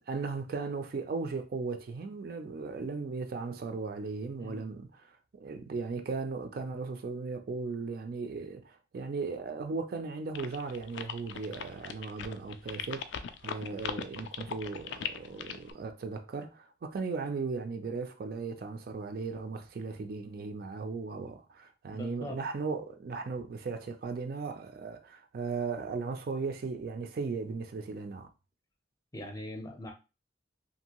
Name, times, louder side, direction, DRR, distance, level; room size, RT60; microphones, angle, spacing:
voice 1, 0.1-13.2 13.4-28.3, right 4 dB, 55° right, 0.4 m, -37 dB
sound 1, 10.3-15.7, left 8 dB, 80° left, 0.3 m, -39 dB
voice 2, 21.9-22.4 29.1-29.9, left 1 dB, 20° left, 0.5 m, -41 dB
2.6 x 2.6 x 2.9 m
head